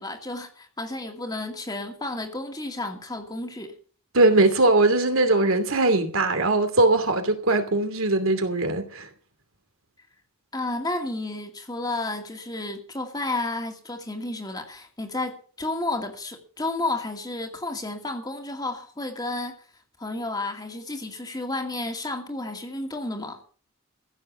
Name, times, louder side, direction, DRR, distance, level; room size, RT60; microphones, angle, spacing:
voice 1, 0.0-3.7 10.5-19.6 20.0-23.4, left 2 dB, 20° left, 2.4 m, -31 dB
voice 2, 4.1-9.1, right 2 dB, 70° right, 2.7 m, -20 dB
15.5 x 7.5 x 8.1 m
head